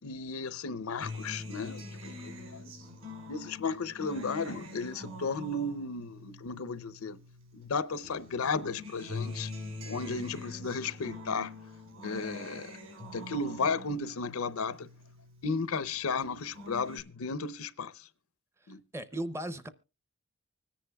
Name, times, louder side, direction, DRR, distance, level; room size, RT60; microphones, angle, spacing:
voice 1, 0.0-2.7 3.3-7.2 7.5-9.5 9.9-11.5 12.0-12.8 13.1-14.9 15.4-18.1 18.7-18.8, left 4 dB, 80° left, 0.6 m, -34 dB
Acoustic guitar, 1.0-7.7 8.0-15.6 16.0-17.0, left 2 dB, 75° right, 4.9 m, -44 dB
voice 2, 18.9-19.7, right 1 dB, 10° right, 0.6 m, -36 dB
25.0 x 10.0 x 2.2 m
head